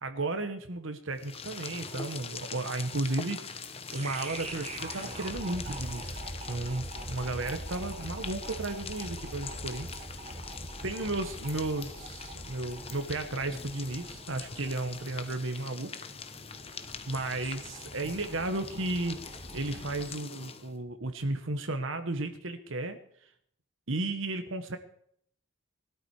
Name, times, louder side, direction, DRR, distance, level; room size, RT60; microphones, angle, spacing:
voice 1, 0.0-10.5 10.8-15.9 16.7-19.2 19.5-23.0 23.9-24.8, right 2 dB, 65° right, 7 dB, 1.2 m, -34 dB
sound 1, 1.1-20.8, left 5 dB, 30° left, 1.0 m, -43 dB
sound 2, 3.9-20.1, right 1 dB, 30° right, 1.7 m, -43 dB
20.5 x 13.0 x 4.8 m, 0.66 s
head